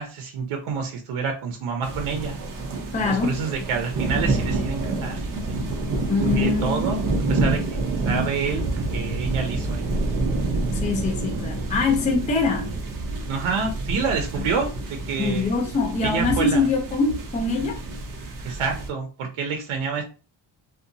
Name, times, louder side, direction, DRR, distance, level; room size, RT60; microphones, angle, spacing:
voice 1, 0.0-2.4 3.1-5.4 6.2-7.8 8.0-9.9 13.3-15.5 16.0-16.7 18.4-20.0, right 5 dB, 85° right, 0.6 m, -28 dB
sound 1, 1.8-18.9, right 2 dB, 45° right, 0.6 m, -28 dB
voice 2, 2.9-3.4 6.1-7.0 10.8-12.7 15.2-17.8, left 4 dB, 20° left, 0.3 m, -23 dB
2.7 x 2.2 x 2.6 m
wide cardioid pair, 175°, 48 cm